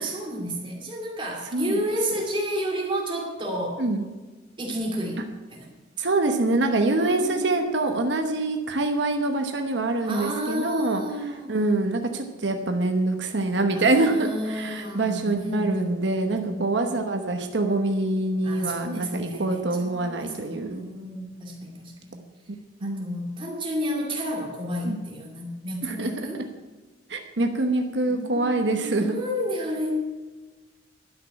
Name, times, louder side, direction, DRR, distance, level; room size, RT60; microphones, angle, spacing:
voice 1, 0.0-3.8 4.6-5.2 5.5-5.7 7.0-7.9 10.0-11.7 13.7-16.7 18.4-22.2 22.8-26.4 28.1-29.9, equal, 30° right, -1 dB, 2.6 m, -31 dB
voice 2, 6.0-11.0 11.5-20.8 22.8-23.2 24.8-25.0 25.8-26.3 27.1-29.1, right 2 dB, 75° right, 4 dB, 1.1 m, -25 dB
12.0 x 6.4 x 9.4 m, 1.3 s
head